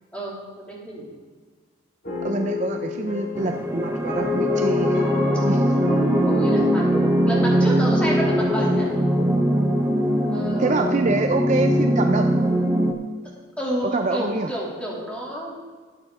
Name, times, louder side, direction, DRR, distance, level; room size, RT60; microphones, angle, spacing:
voice 1, 0.1-1.1 6.2-6.8 7.3-8.9 10.3-11.1 13.6-15.6, equal, 5° left, -5 dB, 2.7 m, -30 dB
sound 1, 2.0-11.2, left 3 dB, 45° left, 2.4 m, -31 dB
voice 2, 2.2-5.1 5.5-5.7 7.6-7.7 10.6-12.5 13.9-14.5, right 3 dB, 35° right, 5 dB, 0.4 m, -25 dB
sound 2, 3.4-12.9, equal, 10° right, 0.8 m, -21 dB
13.5 x 8.7 x 3.7 m, 1.5 s
head